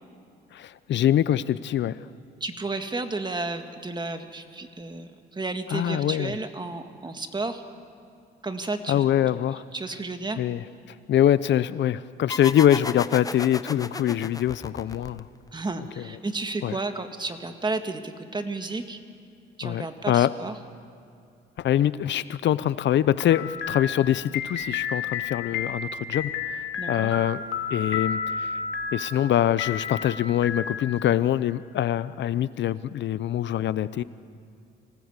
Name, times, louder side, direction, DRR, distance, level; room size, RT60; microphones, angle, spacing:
voice 1, 0.5-2.0 5.7-6.3 8.9-9.6 10.4-10.6 11.1-15.2 16.0-16.1 16.6-16.8 19.6-20.3 21.6-26.6 26.9-27.4 27.7-28.5 28.9-34.0, left 11 dB, 65° left, 16 dB, 0.6 m, -24 dB
voice 2, 2.4-7.6 8.4-9.0 9.7-10.4 15.5-19.0 19.6-20.6 26.8-27.1, right 3 dB, 20° right, 7 dB, 1.9 m, -32 dB
sound 1, 12.3-15.6, left 3 dB, 20° left, 0.8 m, -35 dB
sound 2, 23.3-31.2, left 6 dB, 90° left, 2.3 m, -32 dB
25.5 x 18.0 x 8.2 m, 2.5 s
cardioid pair, 90°, 20 cm